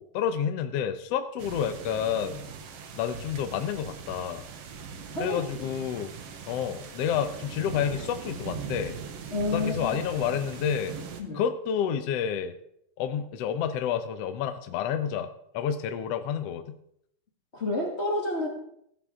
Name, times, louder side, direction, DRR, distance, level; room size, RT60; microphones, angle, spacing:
voice 1, 0.0-2.4 2.9-4.4 5.2-6.1 6.5-9.0 9.5-11.0 11.3-12.5 13.0-15.3 15.5-16.8, left 8 dB, 70° left, 8 dB, 1.5 m, -29 dB
sound 1, 1.4-11.2, right 6 dB, 60° right, 1.8 m, -40 dB
voice 2, 9.3-10.0 11.2-11.4 17.5-18.5, left 2 dB, 30° left, -1 dB, 1.4 m, -29 dB
16.0 x 12.0 x 3.7 m, 0.73 s
omnidirectional pair, 3.9 m